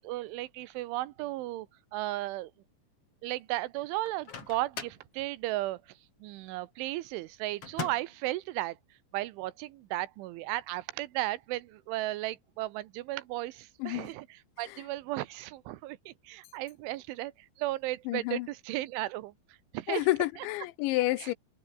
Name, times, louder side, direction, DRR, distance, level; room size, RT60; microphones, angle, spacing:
voice 1, 0.0-1.7 1.9-2.5 3.2-5.8 6.2-8.8 9.1-14.3 14.6-17.3 17.6-19.3 19.7-20.0, right 17 dB, 80° right, 3.4 m, -35 dB
Microwave oven, 4.0-5.1 7.6-8.2, left 6 dB, 35° left, 3.1 m, -40 dB
voice 2, 13.8-14.1 14.6-14.8 18.1-18.5 19.9-21.3, left 18 dB, 80° left, 2.9 m, -30 dB
omnidirectional pair, 5.6 m